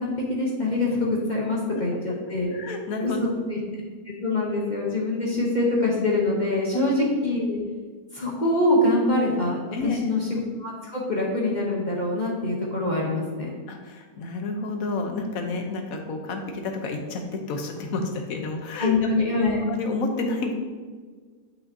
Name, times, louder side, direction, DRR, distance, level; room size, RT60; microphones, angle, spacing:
voice 1, 0.0-2.5 3.0-7.6 8.1-13.5 18.8-19.6, left 2 dB, 35° left, -3 dB, 1.0 m, -25 dB
voice 2, 2.5-3.2 6.7-6.9 9.7-10.2 13.7-18.9 19.2-19.4 19.7-20.5, left 3 dB, 65° left, 4 dB, 1.2 m, -30 dB
8.5 x 5.6 x 2.7 m, 1.5 s
omnidirectional pair, 1.7 m